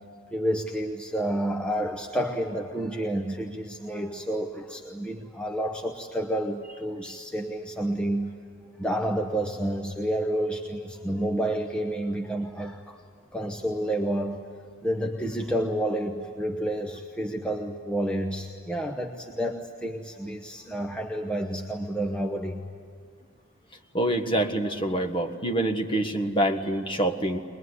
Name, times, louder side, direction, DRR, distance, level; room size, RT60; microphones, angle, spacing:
voice 1, 0.3-8.4 8.8-13.0 13.3-14.5 14.8-22.7, right 1 dB, 5° left, 2 dB, 0.9 m, -30 dB
voice 2, 23.9-27.4, right 1 dB, 25° left, 4 dB, 1.4 m, -26 dB
22.0 x 21.5 x 9.7 m, 2.1 s
head